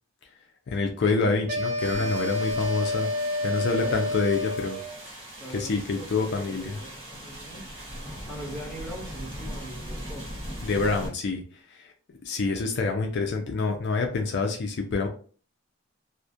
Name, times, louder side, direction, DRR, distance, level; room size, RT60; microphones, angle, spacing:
voice 1, 0.7-3.1 3.4-4.8 5.5-6.8 10.6-11.4 11.7-11.8 12.3-15.1, left 4 dB, 55° left, 3 dB, 0.4 m, -27 dB
sound 1, 1.5-5.0, left 1 dB, 40° right, 0.5 m, -29 dB
sound 2, 1.8-11.1, equal, 25° right, 1.1 m, -40 dB
sound 3, 3.1-4.1, equal, 75° right, 0.8 m, -47 dB
voice 2, 3.6-4.1 5.4-7.6 8.3-10.3, equal, 5° left, -3 dB, 0.7 m, -41 dB
2.3 x 2.1 x 2.6 m, 0.41 s
head